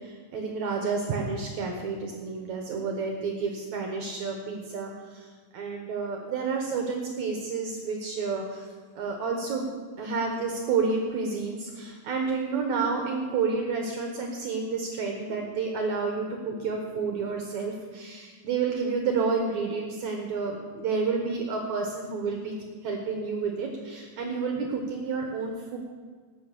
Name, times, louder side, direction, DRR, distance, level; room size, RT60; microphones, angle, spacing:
voice 1, 0.0-5.2 5.5-8.7 8.9-9.7 10.0-22.5 22.8-25.8, right 4 dB, 85° right, 1 dB, 1.6 m, -30 dB
19.0 x 6.3 x 6.7 m, 1.5 s
omnidirectional pair, 5.4 m